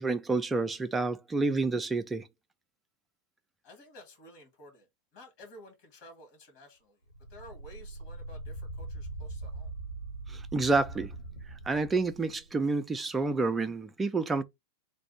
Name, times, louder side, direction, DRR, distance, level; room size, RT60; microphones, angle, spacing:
voice 1, 0.0-2.3 10.3-11.1 11.7-14.4, right 3 dB, 15° right, 0.4 m, -29 dB
voice 2, 3.6-7.0 7.3-9.7, left 1 dB, 45° left, 1.9 m, -52 dB
sound 1, 7.1-12.7 13.2-13.3, right 2 dB, 85° left, 1.3 m, -42 dB
3.3 x 2.6 x 4.2 m
figure-of-eight pair, 90°, 0 cm